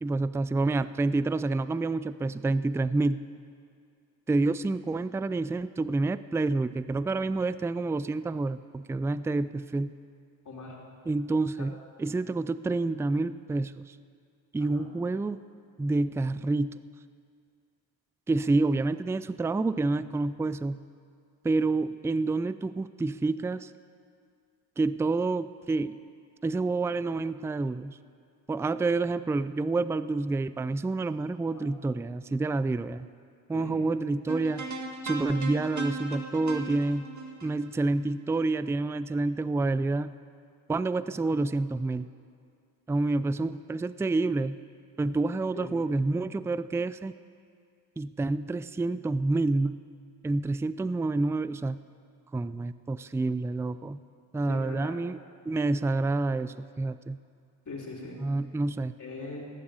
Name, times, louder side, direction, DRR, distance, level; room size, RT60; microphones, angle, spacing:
voice 1, 0.0-3.2 4.3-9.9 11.1-14.0 14.5-15.4 15.8-16.8 18.3-20.8 21.4-23.7 24.8-26.0 26.4-28.0 28.5-33.1 33.5-34.7 35.0-37.1 37.4-40.1 40.7-42.1 42.9-44.6 45.0-47.1 48.0-49.8 50.2-51.8 52.3-54.0 54.3-55.2 55.5-57.2 58.2-58.9, right 3 dB, 5° right, 15 dB, 0.3 m, -28 dB
voice 2, 10.4-10.8 11.6-11.7 14.6-14.9 31.5-31.6 33.5-33.8 41.2-41.4 45.5-45.7 54.5-55.0 57.7-58.2 59.0-59.4, left 3 dB, 40° left, -3 dB, 4.1 m, -41 dB
sound 1, 34.3-38.6, right 3 dB, 40° right, 2.1 m, -37 dB
18.0 x 7.6 x 8.9 m, 2.3 s
supercardioid pair, 65°, 44 cm